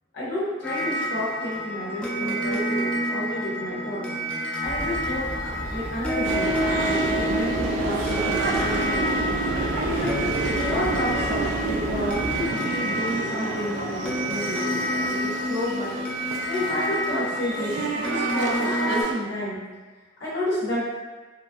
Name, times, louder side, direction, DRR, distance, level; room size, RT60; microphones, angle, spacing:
voice 1, 0.1-4.1 4.3-6.6 6.9-9.1 9.7-16.0 16.5-19.6 20.2-20.9, left 1 dB, 65° left, -9 dB, 0.6 m, -30 dB
sound 1, 0.6-19.0, equal, 5° left, 0.3 m, -29 dB
sound 2, 4.6-12.5, equal, 60° right, 0.8 m, -35 dB
sound 3, 6.2-19.1, right 3 dB, 75° right, 0.3 m, -30 dB
2.9 x 2.5 x 2.3 m, 1.3 s
head